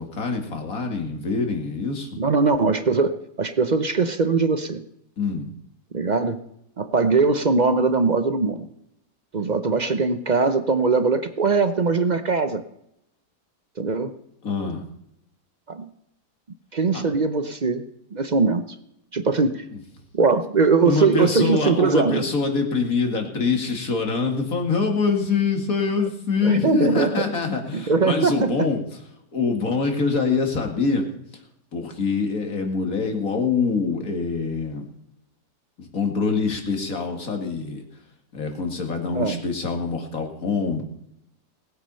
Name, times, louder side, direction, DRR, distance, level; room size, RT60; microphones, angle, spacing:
voice 1, 0.0-2.1 5.2-5.5 14.4-14.8 16.9-17.1 19.7-19.8 20.8-28.8 29.3-31.1 31.7-34.9 35.8-37.9 38.3-40.8, left 4 dB, 60° left, 4 dB, 2.5 m, -24 dB
voice 2, 2.2-4.8 5.9-6.4 6.8-8.7 9.3-12.6 13.8-14.1 15.7-15.9 16.7-17.9 18.1-18.6 19.1-19.6 20.1-22.2 26.4-27.1 27.7-28.6 39.1-39.4, right 4 dB, 45° right, 10 dB, 0.6 m, -21 dB
19.5 x 8.2 x 5.6 m, 0.79 s
omnidirectional pair, 1.7 m